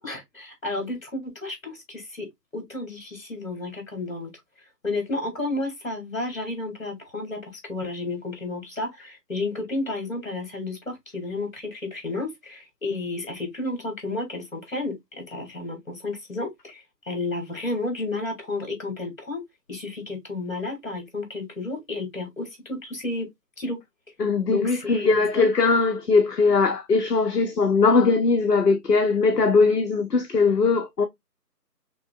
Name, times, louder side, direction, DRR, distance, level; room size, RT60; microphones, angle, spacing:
voice 1, 0.0-2.3 2.5-4.3 4.8-19.4 19.7-23.3 23.6-23.8 24.5-25.5, left 2 dB, 50° left, 2.3 m, -32 dB
voice 2, 24.2-31.1, left 4 dB, 70° left, 0.8 m, -20 dB
5.8 x 2.3 x 2.3 m
figure-of-eight pair, 165°, 49 cm